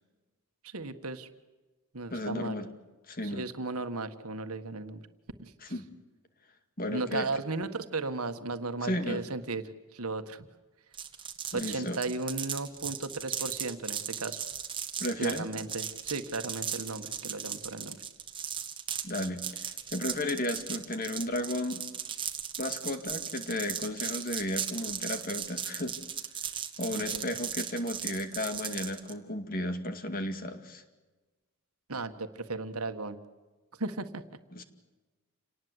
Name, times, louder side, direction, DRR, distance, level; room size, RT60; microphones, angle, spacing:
voice 1, 0.6-1.3 1.9-2.6 3.2-5.0 5.4-5.5 6.9-9.6 9.9-10.5 11.5-14.5 15.2-18.0 26.9-27.4 31.9-33.2 33.8-34.2, right 3 dB, 80° right, 9 dB, 1.6 m, -35 dB
voice 2, 2.1-2.7 3.1-3.4 5.6-5.9 6.8-7.3 8.8-9.2 11.5-12.0 15.0-15.5 19.0-21.8 22.6-26.0 26.8-30.8 34.5-34.6, left 1 dB, 40° left, 8 dB, 2.2 m, -34 dB
sound 1, 10.9-29.1, right 8 dB, 20° right, 1.6 m, -37 dB
28.5 x 19.0 x 8.0 m, 1.2 s
head